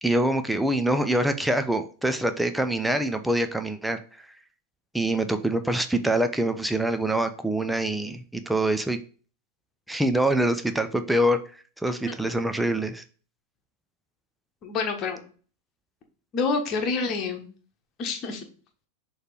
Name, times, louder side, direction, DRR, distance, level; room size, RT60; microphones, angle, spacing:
voice 1, 0.0-4.0 4.9-9.0 9.9-11.4 11.8-13.0, right 1 dB, 5° right, 8 dB, 0.6 m, -25 dB
voice 2, 14.6-15.2 16.3-17.4 18.0-18.4, left 4 dB, 30° left, 3 dB, 1.4 m, -27 dB
6.5 x 3.2 x 4.7 m, 0.40 s
figure-of-eight pair, 90°, 0 cm